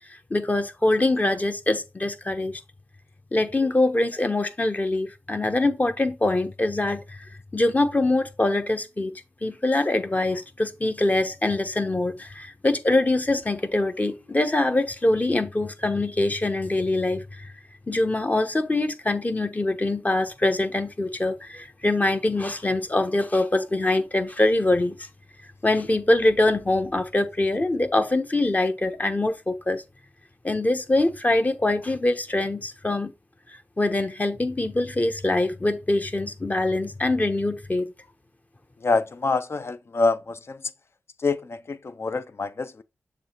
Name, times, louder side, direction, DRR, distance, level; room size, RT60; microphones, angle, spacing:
voice 1, 0.3-2.6 3.3-7.3 7.5-17.5 17.9-25.0 25.6-29.8 30.4-33.1 33.8-37.9, left 2 dB, 30° left, 1.1 m, -24 dB
voice 2, 38.8-40.6 41.2-42.8, left 3 dB, 55° left, 0.6 m, -26 dB
7.1 x 3.2 x 4.5 m
cardioid pair, 50°, 5 cm